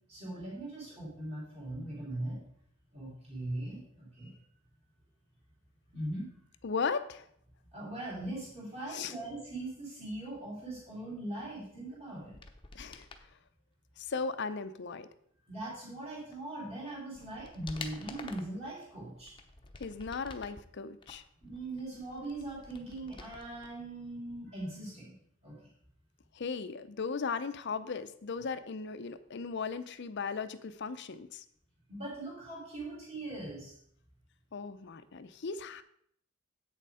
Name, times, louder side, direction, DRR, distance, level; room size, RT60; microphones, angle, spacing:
voice 1, 0.1-2.4 2.9-4.4 5.9-6.4 7.7-12.3 15.5-19.3 21.4-25.1 25.4-25.5 31.9-33.7, right 1 dB, 30° right, -6 dB, 3.4 m, -40 dB
voice 2, 6.6-7.3 8.9-9.1 12.7-13.1 14.0-15.1 19.8-21.2 26.3-31.4 34.5-35.8, left 5 dB, 55° left, 12 dB, 0.6 m, -37 dB
sound 1, 12.2-13.3 16.3-16.4 16.9-18.6 19.1-20.6 21.0-23.7 24.0-24.1, left 3 dB, 25° left, 0.8 m, -49 dB
8.3 x 6.8 x 4.8 m, 0.68 s
head